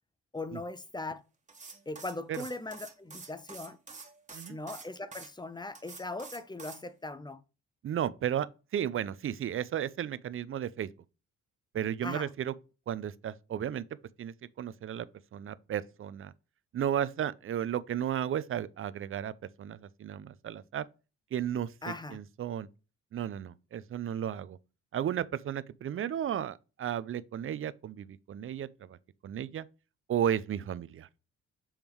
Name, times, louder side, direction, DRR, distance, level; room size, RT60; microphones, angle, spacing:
voice 1, 0.3-1.2 1.9-3.8 4.5-7.4 12.0-12.3 21.8-22.2, left 2 dB, 15° left, 0.6 m, -39 dB
sound 1, 1.5-5.3 5.8-6.8, right 4 dB, 25° right, 1.5 m, -47 dB
voice 2, 7.8-8.5 8.7-10.9 11.7-12.5 12.9-13.8 14.2-15.1 15.3-16.3 16.7-19.3 19.6-20.9 21.3-22.7 23.1-24.6 24.9-29.0 29.2-29.7 30.1-31.1, right 10 dB, 45° right, 0.5 m, -34 dB
7.2 x 3.5 x 4.5 m
cardioid pair, 90°, 30 cm